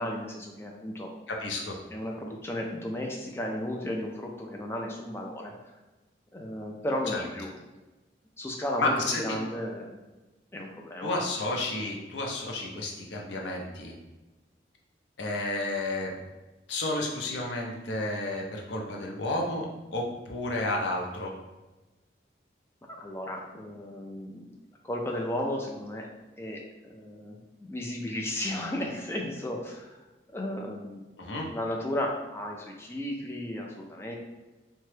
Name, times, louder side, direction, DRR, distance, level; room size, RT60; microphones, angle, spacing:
voice 1, 0.0-1.1 1.9-5.5 6.3-7.5 8.4-10.0 10.5-11.1 22.9-24.5 24.8-26.1 26.4-30.0 30.3-31.0 31.5-34.1, left 1 dB, 15° left, 0 dB, 0.3 m, -34 dB
voice 2, 1.3-1.8 7.1-7.2 8.8-9.4 11.0-13.9 15.2-16.2 16.7-19.7 19.9-21.3 31.2-31.5, left 2 dB, 80° left, 0 dB, 0.6 m, -31 dB
2.9 x 2.2 x 3.1 m, 1.1 s
head